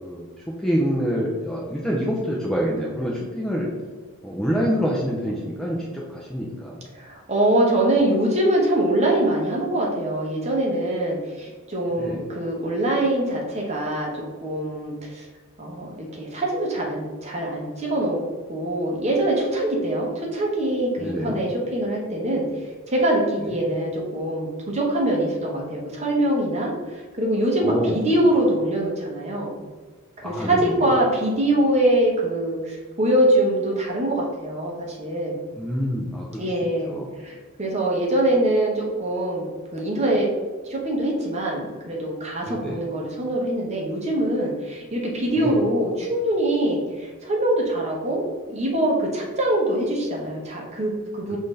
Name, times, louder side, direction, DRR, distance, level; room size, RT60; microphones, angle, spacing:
voice 1, 0.0-3.7 4.2-6.8 12.0-12.2 21.0-21.4 23.4-23.6 27.6-28.0 30.2-30.9 35.6-36.5 36.9-37.1 42.5-42.8 45.4-45.5 51.3-51.4, equal, ahead, -4 dB, 0.4 m, -26 dB
voice 2, 6.9-15.3 15.6-18.2 18.5-22.5 22.9-29.5 30.2-35.4 36.4-39.4 39.7-40.3 40.6-51.4, right 1 dB, 30° right, -2 dB, 0.9 m, -23 dB
5.6 x 2.7 x 3.2 m, 1.4 s
head